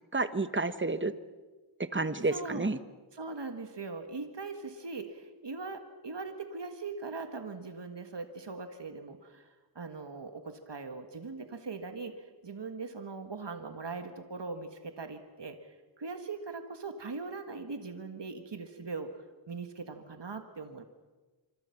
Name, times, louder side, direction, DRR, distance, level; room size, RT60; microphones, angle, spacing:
voice 1, 0.1-1.1 1.9-2.8, right 3 dB, 25° right, 12 dB, 1.2 m, -30 dB
voice 2, 2.3-2.7 3.1-20.8, right 4 dB, 60° right, 7 dB, 1.8 m, -41 dB
25.5 x 25.5 x 5.9 m, 1.3 s
wide cardioid pair, 55°, 47 cm